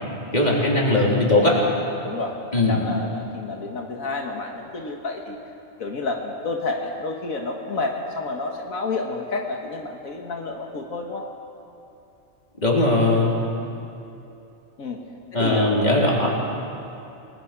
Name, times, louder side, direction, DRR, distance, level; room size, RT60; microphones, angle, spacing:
voice 1, 0.3-1.6 2.5-2.8 12.6-13.4 15.3-16.3, left 2 dB, 30° left, -3 dB, 4.0 m, -19 dB
voice 2, 2.0-2.3 2.7-5.4 5.8-11.2 14.8-15.0 15.3-15.8, left 3 dB, 85° left, 1 dB, 2.0 m, -30 dB
29.5 x 20.0 x 6.1 m, 2.8 s
omnidirectional pair, 1.4 m